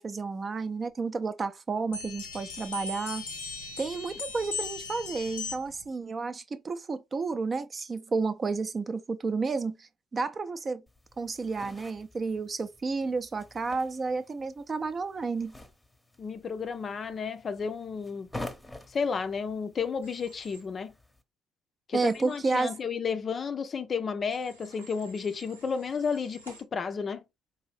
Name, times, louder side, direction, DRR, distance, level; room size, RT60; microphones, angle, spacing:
voice 1, 0.0-3.2 3.8-10.8 11.2-15.5 21.9-22.7, right 4 dB, 30° right, 0.5 m, -31 dB
sound 1, 1.9-5.8, left 4 dB, 75° left, 0.7 m, -38 dB
sound 2, 10.9-21.2, left 1 dB, 10° left, 0.8 m, -48 dB
voice 2, 16.2-18.3 18.9-20.9 21.9-27.2, left 5 dB, 35° left, 0.5 m, -32 dB
Human voice / Train, 20.0-20.6 22.0-22.8 24.3-26.6, right 3 dB, 80° right, 1.0 m, -53 dB
4.8 x 2.6 x 3.1 m
figure-of-eight pair, 50°, 0 cm